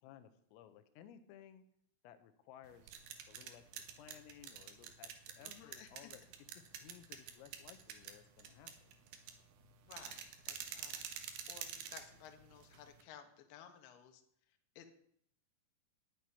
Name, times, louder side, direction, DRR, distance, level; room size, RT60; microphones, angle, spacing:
voice 1, 0.0-1.6 2.0-2.9 3.3-5.1 5.4-6.2 6.6-9.0, left 10 dB, 85° left, 10 dB, 3.7 m, -58 dB
sound 1, 2.6-13.0, right 8 dB, 70° right, 2.3 m, -49 dB
voice 2, 5.4-6.1 9.8-11.1 11.5-14.2 14.8-14.9, left 9 dB, 65° left, 5 dB, 3.0 m, -56 dB
10.0 x 9.3 x 9.8 m, 0.69 s
omnidirectional pair, 6.0 m